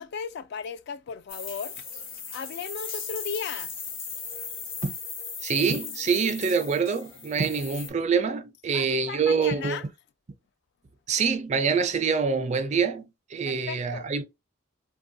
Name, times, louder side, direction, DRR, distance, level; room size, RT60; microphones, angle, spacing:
voice 1, 0.0-1.8 2.3-3.7 8.7-9.8 13.5-14.1, left 6 dB, 55° left, 0.3 m, -36 dB
sound 1, 1.3-7.9, left 6 dB, 70° left, 1.1 m, -37 dB
voice 2, 5.4-9.9 11.1-14.2, right 5 dB, 35° right, 0.4 m, -25 dB
3.3 x 2.2 x 2.6 m
head